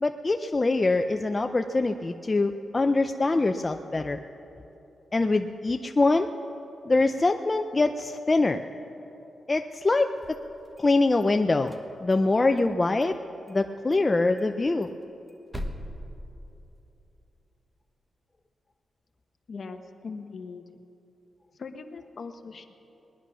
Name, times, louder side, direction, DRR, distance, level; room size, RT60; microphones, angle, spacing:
voice 1, 0.0-4.2 5.1-6.3 6.9-8.6 9.5-10.1 10.8-11.7 12.0-13.2 13.5-14.9, left 3 dB, 25° left, 6 dB, 0.4 m, -24 dB
sound 1, 10.1-11.3 11.6-12.7 13.0-13.1 13.5-13.6 13.9-14.0 14.4-17.0, equal, 10° right, 1.2 m, -41 dB
voice 2, 19.5-20.6 21.6-22.8, left 4 dB, 50° left, 7 dB, 1.0 m, -40 dB
20.0 x 10.5 x 6.2 m, 2.9 s
wide cardioid pair, 125°, 0 cm